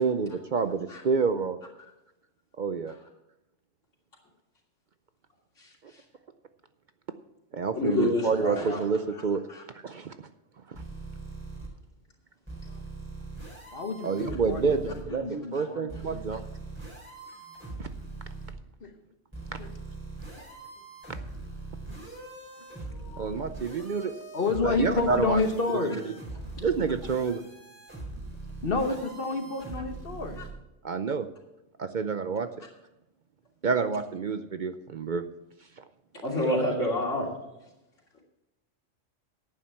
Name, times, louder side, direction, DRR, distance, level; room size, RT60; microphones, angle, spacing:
voice 1, 0.0-1.6 2.6-2.9 7.5-9.4 9.8-10.3 10.7-10.8 14.0-16.4 17.8-17.9 23.2-24.1 24.6-25.4 26.6-27.4 30.8-31.3 31.8-32.5 33.6-35.2 35.8-35.9, right 5 dB, 50° right, 10 dB, 0.6 m, -28 dB
voice 2, 7.7-8.8 9.5-9.6 15.5-15.7 22.9-23.4 36.2-37.3, left 2 dB, 75° left, -3 dB, 3.3 m, -28 dB
sound 1, 10.7-11.7 12.5-15.0 15.9-18.5 19.3-30.5, right 3 dB, 10° right, 4.1 m, -41 dB
voice 3, 13.7-16.2 18.8-18.9 19.6-19.7 20.4-20.5 21.2-21.3 23.8-26.0 28.6-30.4, left 3 dB, 45° left, 5 dB, 1.6 m, -30 dB
11.0 x 9.2 x 5.8 m, 0.95 s
omnidirectional pair, 1.3 m